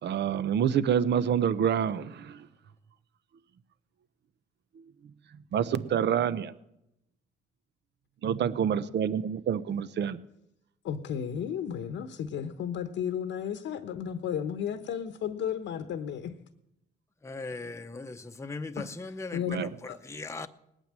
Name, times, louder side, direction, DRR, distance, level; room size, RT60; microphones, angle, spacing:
voice 1, 0.0-2.5 4.7-5.1 5.5-6.5 8.2-10.2 19.5-19.7, right 8 dB, 60° right, 0.8 m, -27 dB
voice 2, 10.8-16.3 18.8-20.0, left 8 dB, 75° left, 1.0 m, -34 dB
voice 3, 17.2-19.4 20.1-20.5, left 3 dB, 15° left, 0.8 m, -38 dB
19.0 x 9.2 x 7.6 m
cardioid pair, 90°, 20 cm